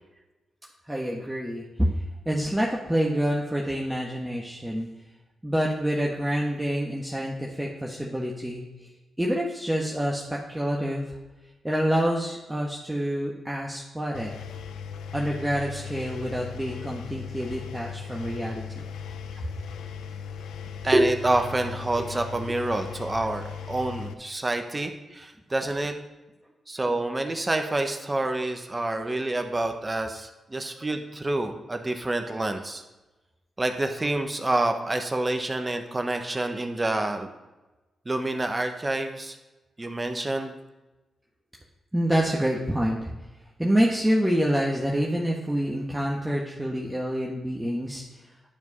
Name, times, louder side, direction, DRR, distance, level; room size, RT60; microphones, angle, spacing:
voice 1, 0.8-4.9 5.4-8.9 9.2-11.2 11.6-14.3 15.1-18.8 41.9-43.1 43.6-48.3, equal, 10° right, -2 dB, 1.4 m, -27 dB
Engine, 14.1-24.1, left 7 dB, 80° left, 0.5 m, -38 dB
voice 2, 20.8-25.9 26.7-32.8 33.6-37.3 38.0-39.4 39.8-40.5, right 2 dB, 25° right, 5 dB, 1.2 m, -27 dB
11.0 x 4.7 x 5.5 m, 1.1 s
supercardioid pair, 45°, 0 cm